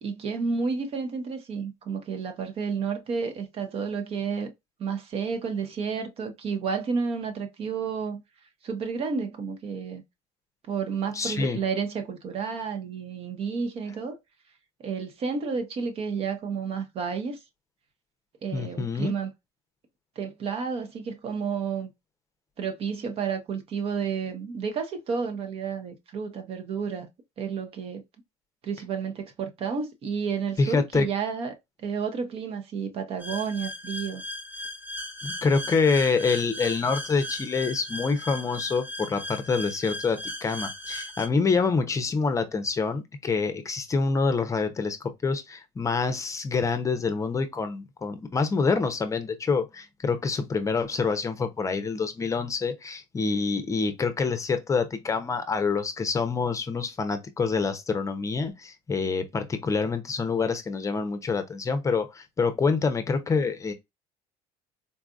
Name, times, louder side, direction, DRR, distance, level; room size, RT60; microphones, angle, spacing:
voice 1, 0.0-4.5 4.8-8.2 8.6-10.0 10.7-14.2 14.8-17.4 18.4-19.3 20.2-21.9 22.6-27.1 27.4-28.0 28.6-34.2, right 5 dB, 50° right, 0.9 m, -31 dB
voice 2, 11.1-11.6 18.5-19.1 30.6-31.1 35.2-63.7, left 4 dB, 25° left, 0.6 m, -26 dB
sound 1, 33.2-41.3, left 1 dB, 15° right, 0.8 m, -37 dB
4.0 x 2.5 x 2.3 m
cardioid pair, 105°, 13 cm